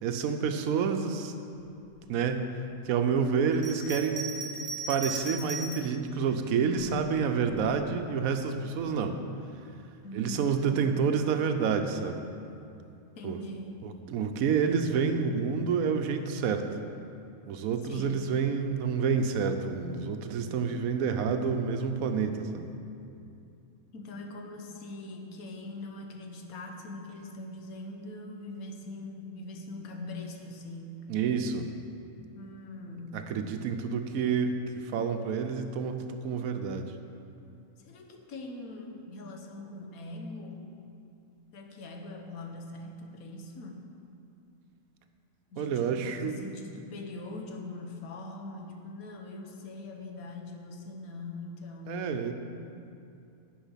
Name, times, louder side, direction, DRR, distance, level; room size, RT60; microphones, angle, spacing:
voice 1, 0.0-1.3 2.1-2.4 2.9-4.3 4.9-9.2 10.1-12.3 13.2-13.4 13.8-16.7 17.5-22.7 31.1-31.7 33.1-34.6 34.8-36.9 45.6-46.4 51.9-52.3, right 6 dB, 80° right, 7 dB, 1.1 m, -28 dB
Bell, 3.5-6.0 6.7-7.6, right 2 dB, 35° right, 1.0 m, -38 dB
voice 2, 10.0-11.0 13.2-13.8 17.8-18.3 23.9-31.1 32.3-33.3 37.8-40.7 41.5-43.8 45.5-52.2, left 2 dB, 85° left, 3 dB, 1.4 m, -42 dB
10.5 x 5.3 x 5.7 m, 2.6 s
omnidirectional pair, 1.5 m